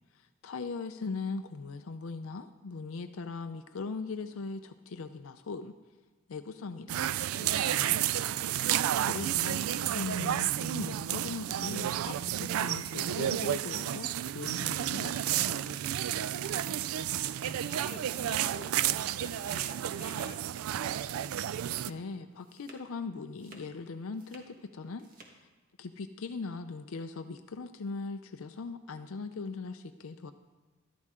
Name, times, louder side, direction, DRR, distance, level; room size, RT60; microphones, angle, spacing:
voice 1, 0.1-5.7 6.3-8.0 9.0-15.8 21.9-25.5 25.8-30.3, left 4 dB, 75° left, 9 dB, 0.5 m, -40 dB
sound 1, 6.9-21.9, right 11 dB, 85° right, 0.3 m, -31 dB
voice 2, 8.0-8.3 16.7-21.1, left 3 dB, 30° left, 1 dB, 1.2 m, -52 dB
sound 2, 21.5-23.0 23.3-24.6 24.8-25.4, right 2 dB, 40° right, 1.6 m, -58 dB
13.0 x 12.5 x 3.7 m, 1.3 s
head